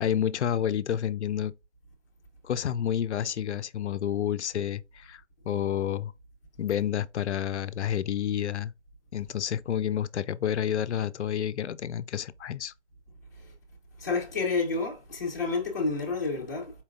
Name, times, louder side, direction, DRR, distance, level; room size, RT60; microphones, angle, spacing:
voice 1, 0.0-1.5 2.4-5.2 5.5-6.1 6.6-8.7 9.1-12.7, left 9 dB, 75° left, 0.5 m, -29 dB
voice 2, 14.0-16.7, left 3 dB, 15° left, 0.6 m, -29 dB
4.4 x 3.7 x 2.3 m
hypercardioid pair, 165°, 35 cm